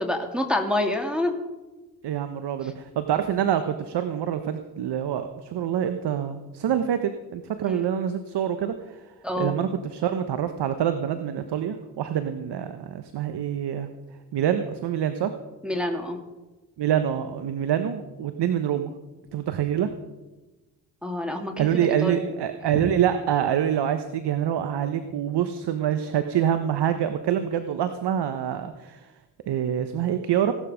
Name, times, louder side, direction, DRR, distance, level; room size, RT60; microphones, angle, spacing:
voice 1, 0.0-1.3 7.6-7.8 9.2-9.5 15.6-16.2 21.0-22.3, left 1 dB, ahead, 2 dB, 2.8 m, -27 dB
voice 2, 2.0-9.0 9.4-13.9 14.3-15.3 16.8-18.9 19.3-19.9 21.6-29.1 29.5-30.5, right 9 dB, 65° right, 9 dB, 1.2 m, -26 dB
17.5 x 12.5 x 5.2 m, 1.1 s
hypercardioid pair, 45°, 44 cm